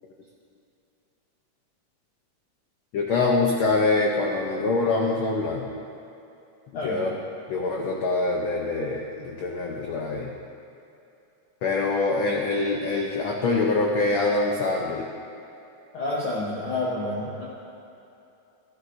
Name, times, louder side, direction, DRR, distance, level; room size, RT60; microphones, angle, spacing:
voice 1, 2.9-5.7 6.7-7.1 7.5-10.3 11.6-15.1, left 3 dB, 85° left, -1 dB, 1.1 m, -24 dB
voice 2, 6.7-7.1 15.9-17.5, left 2 dB, 55° left, -6 dB, 1.6 m, -29 dB
13.5 x 13.0 x 2.6 m, 2.8 s
omnidirectional pair, 3.4 m